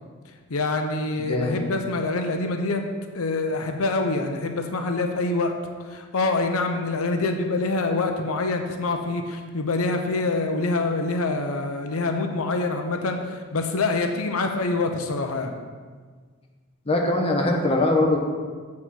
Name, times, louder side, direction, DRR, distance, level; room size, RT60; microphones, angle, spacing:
voice 1, 0.5-2.8 3.1-5.6 5.9-15.5, left 3 dB, 85° left, 5 dB, 0.7 m, -25 dB
voice 2, 1.3-1.6 16.9-18.2, left 2 dB, 25° left, 0 dB, 0.9 m, -21 dB
8.0 x 4.2 x 6.3 m, 1.6 s
head